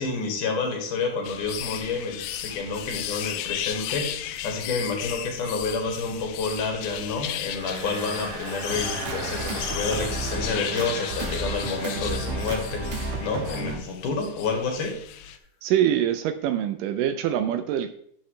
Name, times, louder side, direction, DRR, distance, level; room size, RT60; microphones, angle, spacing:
voice 1, 0.0-4.1 4.4-12.8 13.2-14.9, left 4 dB, 65° left, 3 dB, 3.0 m, -29 dB
sound 1, 1.2-15.4, left 11 dB, 90° left, 2.6 m, -35 dB
Engine, 7.6-13.5, right 2 dB, 35° right, 2.1 m, -38 dB
sound 2, 8.7-13.8, right 2 dB, 55° right, 2.6 m, -32 dB
voice 2, 15.6-17.9, right 10 dB, 80° right, 10 dB, 2.0 m, -24 dB
11.5 x 7.6 x 3.3 m, 0.68 s
omnidirectional pair, 4.2 m